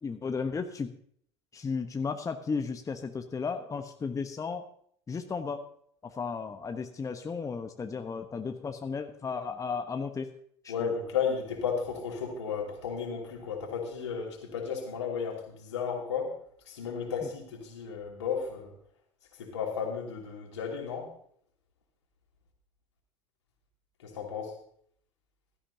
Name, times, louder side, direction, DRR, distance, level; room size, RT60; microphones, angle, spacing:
voice 1, 0.0-0.9 1.5-4.7 5.1-5.6 6.2-10.3 10.6-10.9, left 5 dB, 20° left, 6 dB, 1.0 m, -34 dB
voice 2, 10.7-16.3 16.7-18.7 19.4-21.1 24.0-24.5, left 6 dB, 75° left, 0 dB, 3.0 m, -34 dB
15.5 x 13.0 x 2.8 m, 0.63 s
figure-of-eight pair, 70°, 15 cm